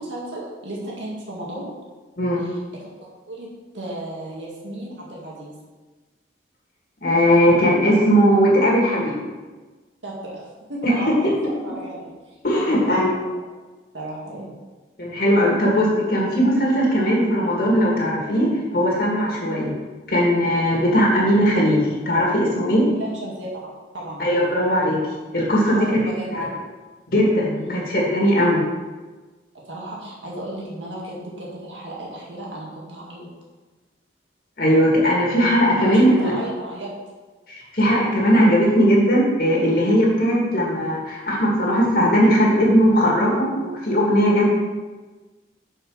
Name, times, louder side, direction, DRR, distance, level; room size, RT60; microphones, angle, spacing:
voice 1, 0.0-1.7 2.4-2.9 3.3-3.5 3.7-5.5 7.3-7.7 10.0-10.4 10.7-13.4 13.9-14.5 23.0-24.2 25.7-26.5 27.5-27.9 29.7-33.3 35.8-36.9, right 1 dB, 90° right, -4 dB, 1.9 m, -34 dB
voice 2, 7.0-9.2 10.8-11.1 12.4-13.1 15.0-19.7 20.1-22.9 24.2-25.0 25.3-26.5 27.1-28.6 34.6-36.3 37.5-44.5, equal, 55° left, -4 dB, 2.0 m, -18 dB
6.5 x 4.6 x 6.3 m, 1.3 s
head